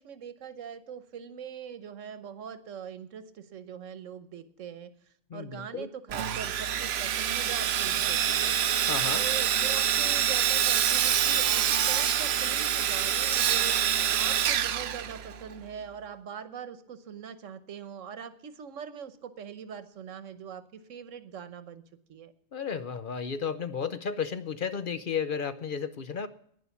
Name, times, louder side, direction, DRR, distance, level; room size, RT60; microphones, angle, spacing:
voice 1, 0.0-4.9 5.3-8.6 9.1-21.8 22.1-22.3, right 7 dB, 90° right, 12 dB, 1.3 m, -42 dB
voice 2, 5.3-5.9 8.9-9.3 22.5-26.3, left 6 dB, 55° left, 12 dB, 0.7 m, -33 dB
Sawing, 6.1-15.6, right 9 dB, 65° right, 0.9 m, -26 dB
11.0 x 9.8 x 7.0 m, 0.68 s
omnidirectional pair, 1.3 m